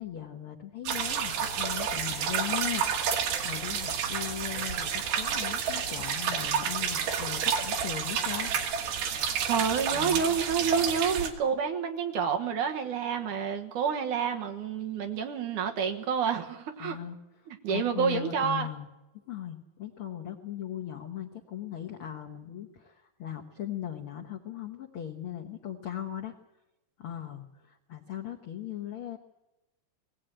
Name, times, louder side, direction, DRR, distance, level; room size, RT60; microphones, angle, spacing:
voice 1, 0.0-8.5 9.9-10.3 16.8-17.2 17.7-18.9 19.3-26.3 27.0-29.2, left 11 dB, 80° left, 2 dB, 1.2 m, -38 dB
sound 1, 0.9-11.3, right 7 dB, 85° right, 3.6 m, -30 dB
voice 2, 9.5-17.0 17.5-18.7, right 7 dB, 65° right, 4 dB, 2.5 m, -29 dB
20.0 x 16.5 x 9.0 m, 0.99 s
omnidirectional pair, 4.3 m